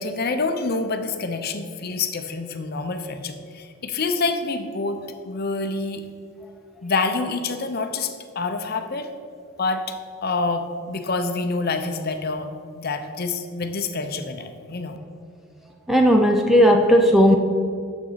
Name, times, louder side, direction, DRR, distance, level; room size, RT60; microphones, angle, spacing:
voice 1, 0.0-5.0 5.2-6.0 6.8-9.1 9.6-9.8 10.2-12.5 12.8-15.0, left 3 dB, 45° left, 7 dB, 0.6 m, -27 dB
voice 2, 15.9-17.4, equal, ahead, 2 dB, 0.4 m, -15 dB
9.3 x 7.3 x 4.0 m, 2.4 s
head